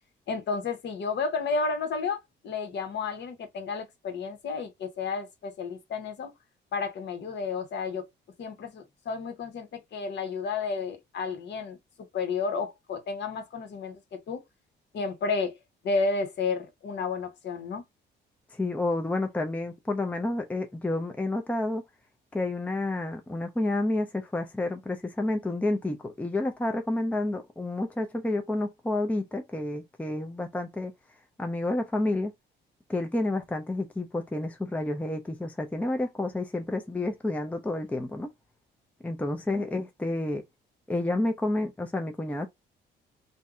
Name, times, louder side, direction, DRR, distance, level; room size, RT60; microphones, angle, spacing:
voice 1, 0.3-6.3 6.7-8.1 8.4-14.4 14.9-15.5 15.8-17.8 39.5-39.6, left 4 dB, 60° left, 1.0 m, -32 dB
voice 2, 18.5-21.8 22.3-30.9 31.4-32.3 32.9-38.3 39.0-40.4 40.9-42.5, left 2 dB, 5° left, 0.5 m, -30 dB
2.6 x 2.1 x 3.6 m
cardioid pair, 90°, 20 cm